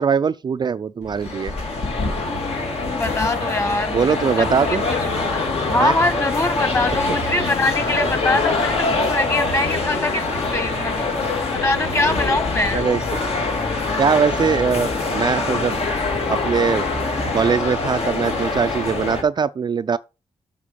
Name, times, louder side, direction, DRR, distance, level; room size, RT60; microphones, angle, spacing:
voice 1, 0.0-1.5 3.9-4.8 5.8-6.0 12.7-13.0 14.0-15.8 16.3-16.9 17.3-20.0, right 6 dB, 40° right, 0.4 m, -21 dB
sound 1, 1.0-19.2, left 3 dB, 70° left, 2.3 m, -24 dB
voice 2, 2.9-4.0 4.4-5.4 5.7-11.1 11.5-12.8, left 2 dB, 25° left, 1.7 m, -23 dB
7.6 x 4.5 x 6.8 m
cardioid pair, 70°, 11 cm